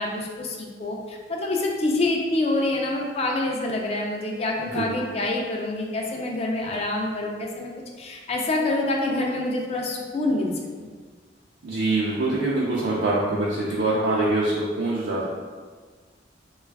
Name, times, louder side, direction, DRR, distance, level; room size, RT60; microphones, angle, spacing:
voice 1, 0.0-7.7 8.0-10.5 10.8-10.9, left 2 dB, 35° left, 0 dB, 0.4 m, -26 dB
voice 2, 4.6-4.9 11.6-15.3, right 2 dB, 75° right, -6 dB, 0.5 m, -24 dB
3.1 x 2.3 x 3.3 m, 1.5 s
head